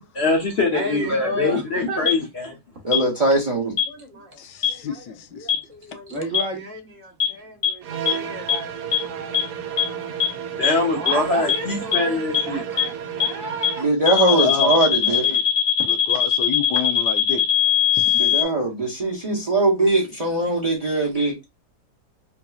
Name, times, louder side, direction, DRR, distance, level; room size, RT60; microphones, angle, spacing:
voice 1, 0.1-2.6 10.6-12.6, left 3 dB, 50° left, 0.8 m, -23 dB
voice 2, 0.7-2.1 3.9-10.2 10.9-13.9, right 1 dB, 50° right, 1.4 m, -34 dB
sound 1, 2.1-2.2 2.9-3.0 3.8-3.9 4.6-4.7 5.5-5.6 6.3-6.4 7.2-7.3 7.6-7.7 8.1-8.2 8.5-8.6 8.9-9.0 9.3-9.4 9.8-9.9 10.2-10.3 10.6-10.7 11.1-11.2 11.5-11.6 11.9-12.0 12.3-12.4 12.8-12.9 13.2-13.3 13.6-13.7 14.1-18.4, left 10 dB, 35° left, 1.1 m, -19 dB
voice 3, 2.8-3.7 13.8-15.2 18.1-21.3, right 2 dB, 35° right, 0.6 m, -21 dB
voice 4, 4.4-5.5 5.9-6.0 14.3-15.4 15.9-17.5 17.9-18.4, left 7 dB, 85° left, 1.2 m, -29 dB
sound 2, 7.8-14.0, right 8 dB, 80° right, 1.2 m, -32 dB
3.8 x 2.8 x 2.3 m
omnidirectional pair, 1.7 m